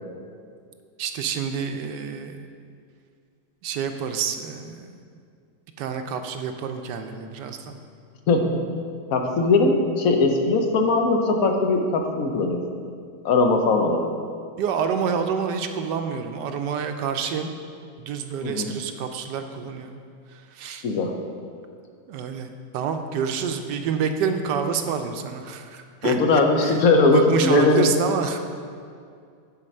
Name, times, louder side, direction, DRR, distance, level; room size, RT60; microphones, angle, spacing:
voice 1, 1.0-2.4 3.6-4.9 5.8-7.8 14.6-17.5 18.0-20.0 20.3-20.8 22.1-26.8 27.1-28.4, right 6 dB, 80° right, 6 dB, 1.2 m, -28 dB
voice 2, 8.3-8.6 9.1-12.6 13.2-14.1 18.4-18.7 20.8-21.1 26.0-27.9, left 3 dB, 60° left, 4 dB, 1.1 m, -20 dB
9.9 x 4.4 x 5.3 m, 2.3 s
omnidirectional pair, 1.9 m